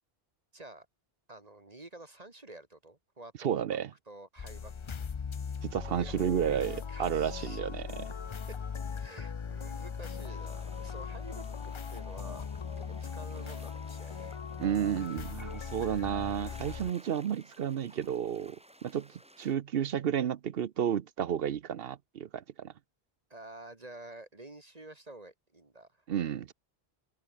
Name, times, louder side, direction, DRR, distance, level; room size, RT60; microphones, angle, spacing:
voice 1, 0.5-0.9 1.3-3.7 4.1-5.1 5.9-7.7 9.0-12.4 12.8-14.3 17.1-17.2 23.3-25.9, right 2 dB, 40° right, 2.0 m, -49 dB
voice 2, 3.4-3.9 5.6-8.0 14.6-18.6 18.8-19.1 19.4-22.7 26.1-26.5, right 9 dB, 65° right, 0.9 m, -32 dB
sound 1, 4.4-16.9, left 6 dB, 35° left, 0.5 m, -39 dB
sound 2, 10.3-19.5, right 1 dB, 5° right, 1.4 m, -58 dB
open air
omnidirectional pair, 1.1 m